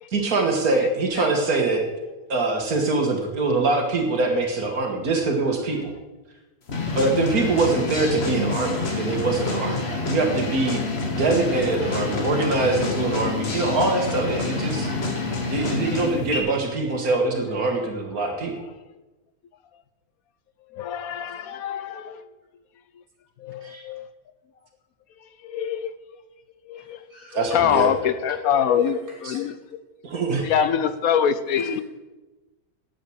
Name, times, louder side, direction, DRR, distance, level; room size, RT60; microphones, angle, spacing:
voice 1, 0.1-1.8 2.3-5.9 6.9-10.8 11.1-14.9 15.5-18.7 27.3-27.9 29.2-29.4 30.0-30.4, right 3 dB, 75° right, 3 dB, 2.1 m, -23 dB
sound 1, 6.7-16.4, left 3 dB, 45° left, 1.8 m, -27 dB
voice 2, 14.7-15.1 20.7-22.3 23.4-24.0 25.4-25.9 26.7-27.0 27.3-29.8 30.4-31.8, left 8 dB, 75° left, 12 dB, 1.1 m, -25 dB
voice 3, 26.8-27.9 29.3-29.4 30.1-30.2 31.6-31.8, left 2 dB, 35° right, -2 dB, 4.5 m, -39 dB
10.0 x 8.9 x 7.9 m, 1.1 s
omnidirectional pair, 1.6 m